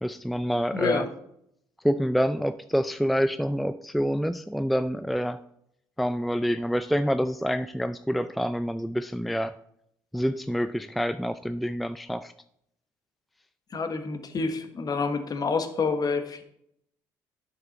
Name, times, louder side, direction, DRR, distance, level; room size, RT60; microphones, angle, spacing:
voice 1, 0.0-1.0 1.8-5.4 6.0-9.5 10.1-12.3, equal, ahead, 12 dB, 0.3 m, -27 dB
voice 2, 0.7-1.1 13.7-16.4, left 4 dB, 40° left, 8 dB, 1.2 m, -28 dB
8.8 x 6.1 x 4.1 m, 0.73 s
hypercardioid pair, 60°, 10 cm